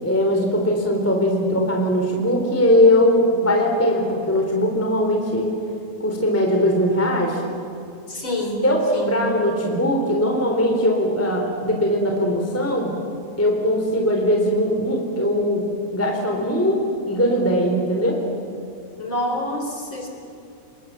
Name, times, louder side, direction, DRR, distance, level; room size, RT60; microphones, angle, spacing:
voice 1, 0.0-5.6 6.0-7.4 8.6-13.0 13.4-18.2, equal, 5° left, 1 dB, 2.9 m, -20 dB
voice 2, 8.1-8.6 8.9-9.2 19.0-20.1, left 1 dB, 30° left, 2 dB, 4.4 m, -27 dB
28.5 x 21.5 x 7.6 m, 2.7 s
omnidirectional pair, 4.9 m